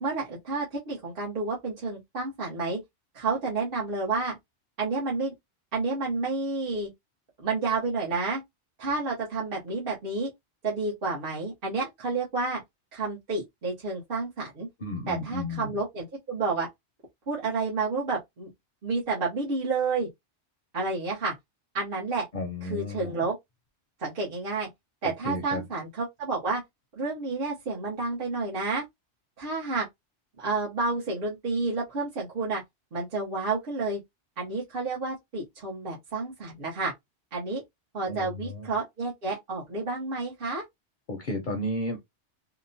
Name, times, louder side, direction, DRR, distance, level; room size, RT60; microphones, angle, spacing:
voice 1, 0.0-2.8 3.1-4.4 4.8-5.3 5.7-6.9 7.4-8.4 8.8-10.3 10.6-12.6 12.9-14.7 15.1-16.7 17.3-18.5 18.8-20.1 20.7-21.3 21.7-22.2 22.6-23.4 24.0-24.7 25.0-26.6 27.0-28.8 29.4-29.9 30.4-32.6 32.9-34.0 34.4-36.9 37.3-37.6 37.9-40.6, right 3 dB, 50° right, 1.0 m, -30 dB
voice 2, 14.8-15.8 22.3-23.2 25.2-25.6 38.1-38.7 41.1-42.0, left 1 dB, 50° left, 0.7 m, -33 dB
2.8 x 2.1 x 2.6 m
omnidirectional pair, 1.2 m